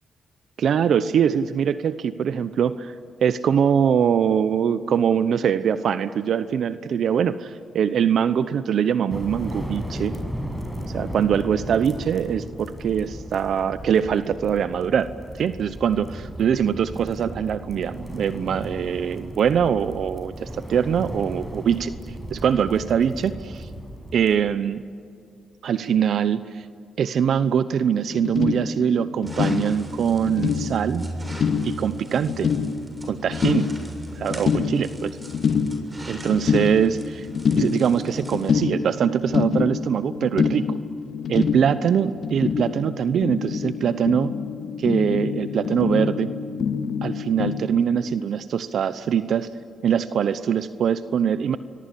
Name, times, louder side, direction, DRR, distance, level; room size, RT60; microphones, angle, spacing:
voice 1, 0.6-2.9 3.2-10.1 10.8-15.1 15.4-21.9 22.3-23.7 24.1-24.8 25.6-26.7 27.0-31.1 31.6-32.5 33.0-33.7 34.2-35.2 36.1-37.3 37.5-40.8 41.3-44.3 44.8-46.3 47.0-49.5 49.8-51.6, right 8 dB, 70° right, 13 dB, 0.8 m, -23 dB
sound 1, 9.1-24.4, equal, 5° right, 6.5 m, -35 dB
sound 2, 27.8-27.9 28.1-47.6, left 6 dB, 65° left, 1.9 m, -26 dB
sound 3, 29.2-38.6, right 2 dB, 25° right, 7.2 m, -39 dB
27.5 x 23.0 x 8.5 m, 2.3 s
cardioid pair, 70°, 0 cm